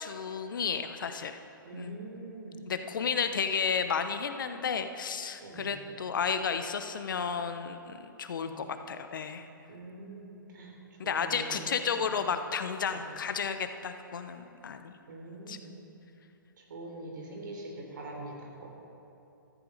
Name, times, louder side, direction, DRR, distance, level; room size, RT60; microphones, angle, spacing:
voice 1, 0.0-1.4 1.7-2.0 2.7-9.5 11.0-15.0 15.5-15.6, left 6 dB, 65° left, 8 dB, 1.0 m, -32 dB
voice 2, 1.6-2.6 5.4-5.8 8.4-8.6 9.7-11.7 12.0-12.1 12.9-13.1 15.1-15.7 16.6-18.7, right 2 dB, 65° right, 0 dB, 3.6 m, -44 dB
14.5 x 14.0 x 4.1 m, 2.8 s
hypercardioid pair, 125°, 12 cm